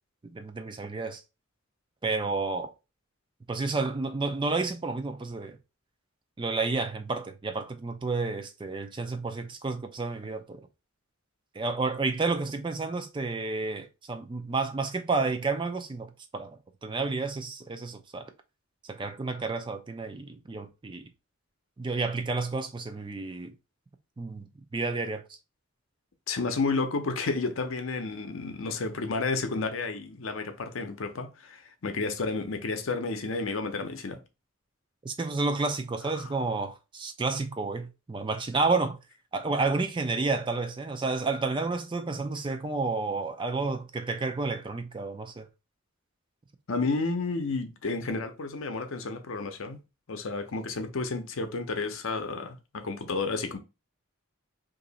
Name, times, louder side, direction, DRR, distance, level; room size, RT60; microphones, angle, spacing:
voice 1, 0.2-1.2 2.0-2.7 3.5-5.6 6.4-10.6 11.6-18.3 18.9-21.1 21.8-23.6 24.2-25.2 35.0-39.0 39.3-45.5, right 3 dB, 25° right, 0.4 m, -31 dB
voice 2, 26.3-34.2 36.1-36.2 46.7-49.8 50.1-53.6, left 3 dB, 70° left, 0.6 m, -31 dB
2.9 x 2.6 x 4.0 m
head